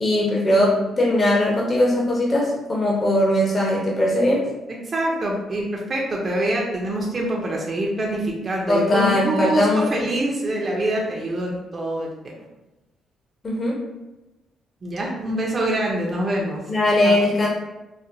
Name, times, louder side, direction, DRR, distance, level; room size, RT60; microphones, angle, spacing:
voice 1, 0.0-4.5 8.7-9.9 13.4-13.8 16.7-17.5, left 1 dB, 30° left, -3 dB, 0.8 m, -20 dB
voice 2, 4.8-12.1 14.8-16.6 17.0-17.2, right 1 dB, 35° right, -2 dB, 0.6 m, -25 dB
4.1 x 2.1 x 2.5 m, 1.0 s
cardioid pair, 90°, 0 cm